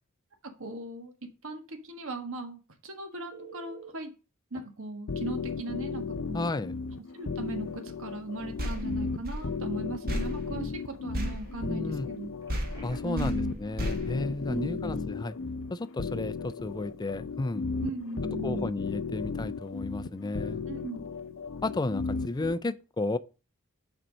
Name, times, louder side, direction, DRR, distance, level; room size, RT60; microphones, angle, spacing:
voice 1, 0.6-1.1 1.4-4.1 4.5-6.5 7.1-12.3 13.0-13.6 14.5-15.1 17.8-18.7 20.7-21.0, right 2 dB, 65° right, 1.4 m, -38 dB
Telephone, 3.3-4.0 4.5-4.6 6.4-6.5 6.9-7.1 12.4-13.3 20.4-20.6, right 5 dB, 20° right, 2.4 m, -49 dB
sound 1, 5.1-22.5, left 4 dB, 65° left, 0.7 m, -35 dB
voice 2, 6.3-6.7 11.6-12.1 12.8-15.3 15.7-17.7 18.4-20.7 21.6-23.2, left 2 dB, 20° left, 0.4 m, -33 dB
sound 2, 8.6-12.2 12.5-15.0, equal, 45° right, 1.6 m, -36 dB
6.8 x 4.4 x 6.2 m
head